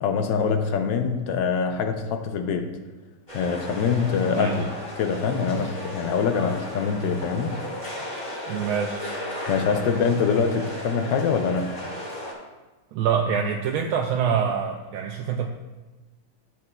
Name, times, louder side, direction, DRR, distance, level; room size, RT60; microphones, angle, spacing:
voice 1, 0.0-2.7 3.3-4.7 5.0-7.6 9.5-11.7, left 6 dB, 70° left, 6 dB, 1.2 m, -24 dB
sound 1, 3.3-12.3, left 1 dB, 20° left, 1.7 m, -35 dB
voice 2, 4.2-4.6 8.5-9.1 12.9-15.5, right 7 dB, 80° right, 2 dB, 1.4 m, -25 dB
13.5 x 6.8 x 2.3 m, 1.2 s
omnidirectional pair, 2.4 m